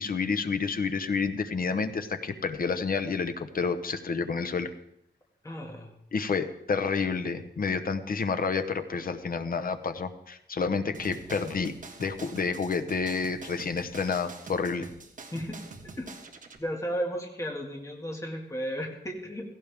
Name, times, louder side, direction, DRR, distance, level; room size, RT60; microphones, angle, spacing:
voice 1, 0.0-4.7 6.1-14.9, left 5 dB, 55° left, 9 dB, 1.0 m, -29 dB
voice 2, 5.4-5.9 15.3-15.6 16.0-16.2 16.6-19.5, equal, 15° left, 0 dB, 2.1 m, -34 dB
sound 1, 10.9-16.6, right 3 dB, 45° right, 1.6 m, -45 dB
16.5 x 16.0 x 3.6 m, 0.78 s
wide cardioid pair, 150°, 18 cm